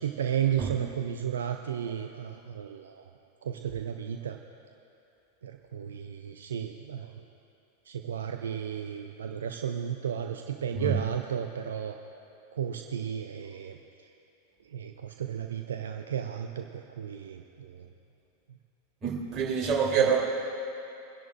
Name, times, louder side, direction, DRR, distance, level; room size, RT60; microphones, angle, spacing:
voice 1, 0.0-3.0 3.4-4.4 5.4-7.2 7.9-12.0 12.5-13.8 14.7-17.9, right 9 dB, 65° right, 5 dB, 0.5 m, -33 dB
voice 2, 19.0-20.2, right 6 dB, 30° right, -5 dB, 3.1 m, -26 dB
24.0 x 10.5 x 2.5 m, 2.7 s
figure-of-eight pair, 90°, 0 cm